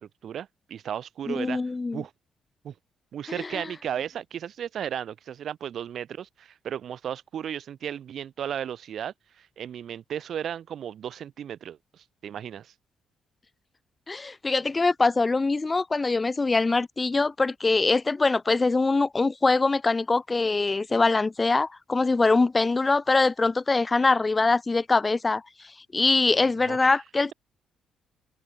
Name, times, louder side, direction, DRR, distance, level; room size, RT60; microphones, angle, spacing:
voice 1, 0.0-1.6 1.9-2.1 2.6-2.7 3.1-12.7 26.6-27.0, right 9 dB, 65° right, 6.8 m, -35 dB
voice 2, 1.3-2.0 3.4-3.7 14.1-25.4 25.9-27.3, left 3 dB, 25° left, 0.8 m, -23 dB
cardioid pair, 90°, 0 cm